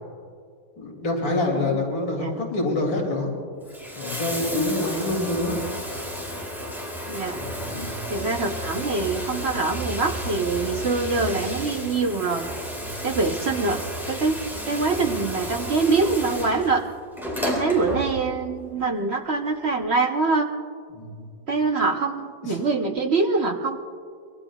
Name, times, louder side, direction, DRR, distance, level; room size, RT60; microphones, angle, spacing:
voice 1, 0.8-3.3 4.0-5.6 7.3-8.0 12.8-13.0 17.5-17.7 20.9-21.3 22.4-22.6, left 2 dB, 80° left, 0 dB, 3.4 m, -27 dB
Bathtub (filling or washing), 3.5-18.5 19.6-19.7, equal, ahead, 4.0 m, -32 dB
voice 2, 7.1-7.4 8.1-12.5 13.0-16.8 17.4-20.5 21.5-23.8, right 3 dB, 45° right, 2 dB, 0.8 m, -24 dB
24.5 x 22.0 x 2.3 m, 2.2 s
omnidirectional pair, 2.1 m